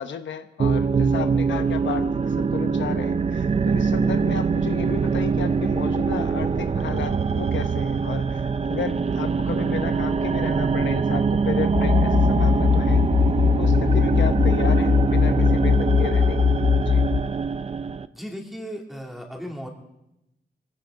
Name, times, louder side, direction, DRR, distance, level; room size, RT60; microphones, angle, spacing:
voice 1, 0.0-13.2 13.6-16.4 16.8-17.0, left 7 dB, 90° left, 8 dB, 1.0 m, -33 dB
sound 1, 0.6-18.1, right 5 dB, 35° right, 0.5 m, -23 dB
sound 2, 11.7-17.2, left 6 dB, 25° left, 0.5 m, -20 dB
voice 2, 18.1-19.7, equal, ahead, 0 dB, 2.6 m, -36 dB
22.5 x 16.0 x 3.8 m, 0.87 s
wide cardioid pair, 160°, 19 cm